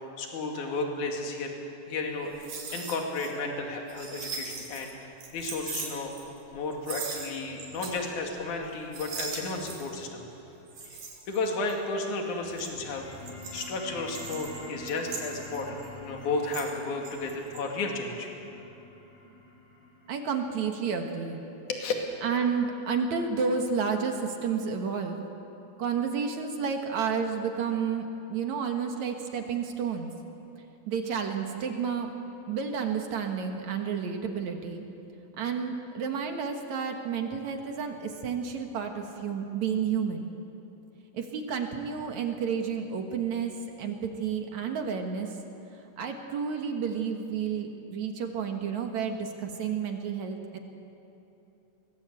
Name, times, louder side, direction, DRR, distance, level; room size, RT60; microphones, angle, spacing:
voice 1, 0.2-1.5 1.9-6.1 6.5-10.3 11.3-13.0 13.5-18.3 21.7-21.9, left 3 dB, 55° left, 2 dB, 3.6 m, -33 dB
sound 1, 2.2-3.3 3.6-4.9 5.2-6.6 6.8-8.1 8.4-8.6 8.9-10.0 10.7-11.9 12.3-16.8 17.0-17.6, right 4 dB, 80° right, 5.0 m, -40 dB
sound 2, 12.7-23.7, left 2 dB, 20° left, 6.4 m, -48 dB
voice 2, 20.1-21.4 22.2-25.2 25.8-30.1 30.9-32.1 32.5-34.8 35.4-40.3 41.1-43.5 43.8-45.3 46.0-50.6, right 6 dB, 60° right, 4 dB, 2.5 m, -31 dB
23.0 x 20.5 x 8.2 m, 2.9 s
omnidirectional pair, 4.3 m